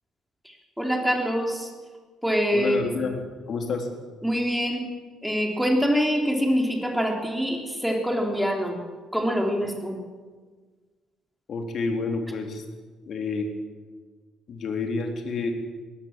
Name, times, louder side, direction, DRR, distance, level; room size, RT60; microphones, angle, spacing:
voice 1, 0.4-1.7 2.2-2.9 4.2-4.9 5.2-8.8 9.1-10.0, equal, ahead, 1 dB, 3.5 m, -25 dB
voice 2, 2.5-3.2 3.5-3.9 11.5-12.6 13.1-13.5 14.5-15.5, left 4 dB, 50° left, 4 dB, 3.5 m, -29 dB
21.5 x 17.0 x 7.5 m, 1.4 s
cardioid pair, 130°, 0 cm